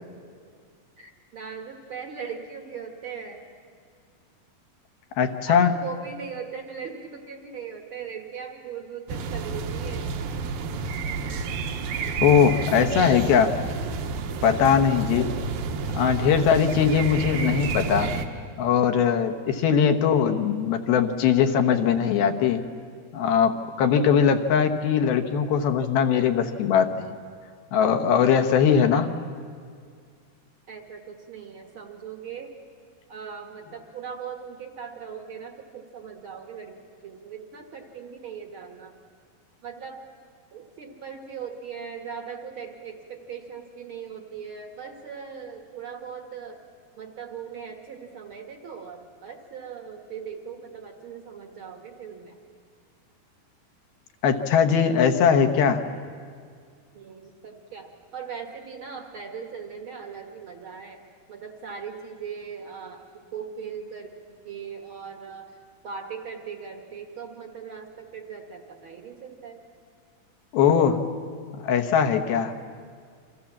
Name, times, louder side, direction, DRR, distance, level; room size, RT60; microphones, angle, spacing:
voice 1, 1.0-3.4 5.5-10.1 12.8-13.3 14.9-15.4 30.7-32.5 33.1-36.8 37.0-38.9 39.6-40.1 40.5-46.6 47.0-52.4 56.9-61.0 61.3-69.6, right 6 dB, 55° right, 4 dB, 1.6 m, -39 dB
voice 2, 5.2-5.7 12.2-13.5 14.4-15.3 15.9-18.1 18.6-22.6 23.1-27.2 27.7-29.1 54.2-55.8 70.5-71.0 71.6-72.7, left 7 dB, 80° left, 7 dB, 3.2 m, -21 dB
sound 1, 9.1-18.3, right 4 dB, 75° right, 3.0 m, -30 dB
29.0 x 25.5 x 7.3 m, 2.1 s
omnidirectional pair, 4.3 m